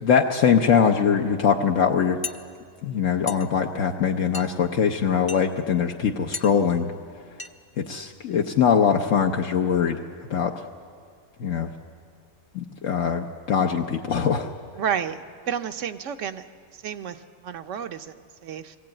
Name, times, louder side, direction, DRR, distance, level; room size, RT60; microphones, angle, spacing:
voice 1, 0.0-2.2 2.8-6.9 7.8-10.0 10.3-10.5 11.4-11.7 12.5-14.5, left 7 dB, 70° left, 2 dB, 1.2 m, -22 dB
sound 1, 2.2-2.4 3.3-3.5 4.3-4.5 5.3-5.5 6.3-6.5 7.4-7.5 7.9-8.0 8.3-8.5, left 4 dB, 25° left, 0.5 m, -34 dB
voice 2, 14.8-16.4 16.8-17.2 17.4-18.1 18.4-18.8, right 8 dB, 70° right, 10 dB, 1.1 m, -30 dB
20.5 x 16.0 x 8.8 m, 2.1 s
omnidirectional pair, 1.4 m